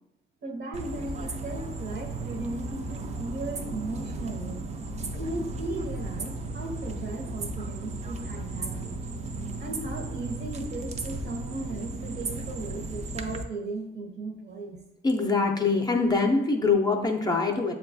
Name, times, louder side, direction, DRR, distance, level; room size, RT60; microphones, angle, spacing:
voice 1, 0.4-4.7 5.1-9.0 9.6-14.8, right 2 dB, 60° right, 2 dB, 0.9 m, -36 dB
sound 1, 0.7-13.4, right 2 dB, 35° right, 0.4 m, -35 dB
voice 2, 15.0-17.7, left 4 dB, 20° left, 3 dB, 0.5 m, -24 dB
6.7 x 2.3 x 2.6 m, 0.88 s
cardioid pair, 90°, 20 cm